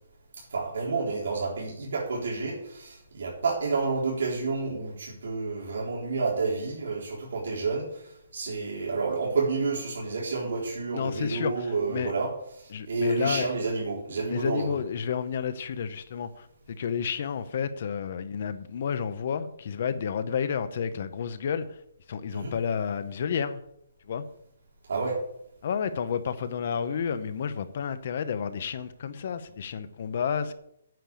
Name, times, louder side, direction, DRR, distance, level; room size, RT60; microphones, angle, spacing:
voice 1, 0.5-8.0 8.3-12.3 12.6-14.8 22.3-22.5 24.9-25.2, right 4 dB, 70° right, 3.9 m, -30 dB
voice 2, 10.9-12.1 12.7-13.5 14.3-21.8 22.1-23.6 24.1-24.2 25.6-30.5, left 7 dB, 40° left, 0.8 m, -31 dB
9.3 x 6.7 x 8.3 m
hypercardioid pair, 175°, 0 cm